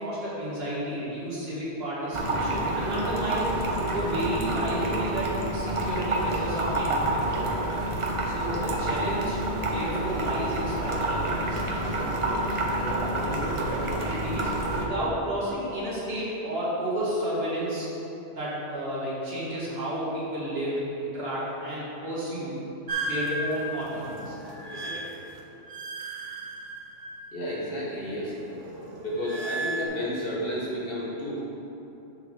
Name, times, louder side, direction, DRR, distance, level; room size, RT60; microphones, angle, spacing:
voice 1, 0.0-7.5 8.2-9.4 9.7-12.1 12.5-14.5 14.8-17.9 18.3-22.6 23.0-24.4 24.7-25.1, right 1 dB, 55° right, -9 dB, 1.9 m, -32 dB
sound 1, 2.1-14.9, right 1 dB, 40° right, 0.5 m, -28 dB
sound 2, 22.9-27.6 27.9-29.9, right 2 dB, 75° right, 1.2 m, -35 dB
voice 2, 27.3-28.4 29.0-31.4, left 1 dB, 50° left, -7 dB, 1.6 m, -31 dB
6.8 x 3.7 x 6.3 m, 3.0 s
omnidirectional pair, 1.3 m